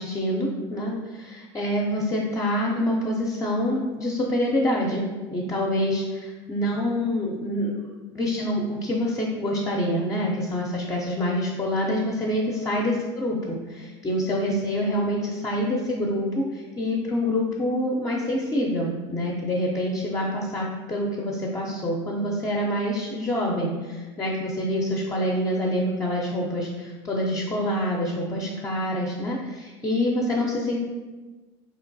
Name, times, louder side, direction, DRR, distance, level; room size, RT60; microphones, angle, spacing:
voice 1, 0.0-30.8, left 1 dB, 20° left, -3 dB, 0.5 m, -26 dB
3.6 x 2.9 x 2.6 m, 1.3 s
hypercardioid pair, 85°, 15 cm